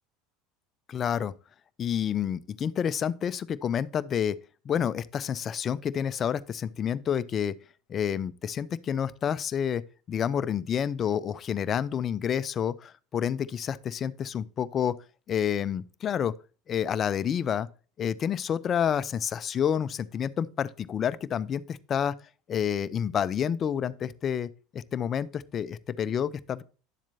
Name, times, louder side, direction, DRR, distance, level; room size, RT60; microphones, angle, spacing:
voice 1, 0.9-1.3 1.8-4.4 4.7-7.6 7.9-14.9 15.3-16.3 16.7-17.7 18.0-22.1 22.5-26.6, left 8 dB, 40° left, 0.5 m, -29 dB
11.0 x 7.3 x 2.7 m
hypercardioid pair, 80°, 0 cm